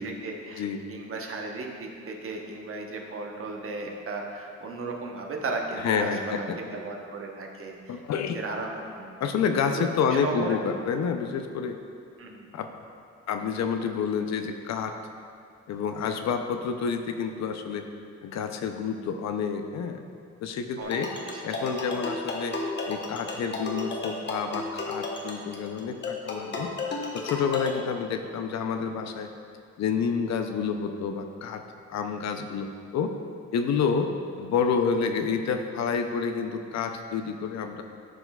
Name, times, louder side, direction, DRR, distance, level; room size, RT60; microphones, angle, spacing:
voice 1, 0.0-0.6 0.9-8.0 8.3-9.2 9.7-10.6 12.2-12.5 20.8-21.6 21.9-22.2, right 3 dB, 45° right, 1 dB, 1.0 m, -36 dB
voice 2, 5.8-6.6 7.9-8.4 9.2-11.8 12.5-12.7 13.3-14.9 15.7-17.9 18.2-20.0 20.4-21.1 21.4-22.6 22.9-26.7 27.1-29.3 29.8-31.6 31.9-33.1 33.5-34.1 34.4-37.8, left 6 dB, 65° left, 6 dB, 0.5 m, -29 dB
sound 1, 20.8-27.7, left 3 dB, 35° left, 1.0 m, -33 dB
12.0 x 4.3 x 2.3 m, 2.4 s
cardioid pair, 90°, 30 cm